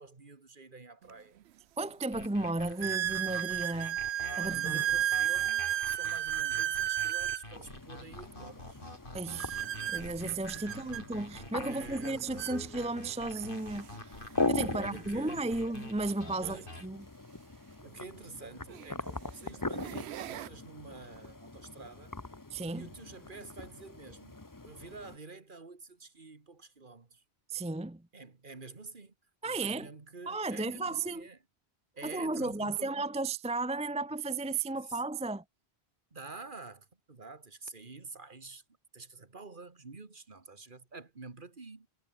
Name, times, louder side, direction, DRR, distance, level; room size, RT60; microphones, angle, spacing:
voice 1, 0.0-1.4 4.3-8.8 10.6-11.1 11.7-12.2 14.6-15.4 16.4-16.7 17.8-22.1 22.7-24.4 24.6-27.2 28.1-29.1 29.4-31.4 31.9-32.9 34.8-35.0 36.1-38.6 38.9-41.9, right 3 dB, 50° right, 2.0 m, -48 dB
sound 1, 1.1-1.2 1.8-1.9 2.8-7.5 9.4-11.0 12.0-12.1 12.4-12.6 13.4-13.5 15.7-15.8 17.9-18.0 18.7-19.0 19.5-20.5, right 12 dB, 80° right, 0.9 m, -33 dB
voice 2, 1.8-4.0 4.4-4.8 9.1-14.2 14.5-17.0 22.5-22.9 27.5-28.0 29.4-29.9 30.3-31.3 32.0-35.4, right 3 dB, 5° right, 0.6 m, -34 dB
sound 2, 2.1-16.9, left 1 dB, 55° left, 5.5 m, -47 dB
sound 3, 7.5-25.2, left 2 dB, 20° left, 1.1 m, -41 dB
omnidirectional pair, 1.1 m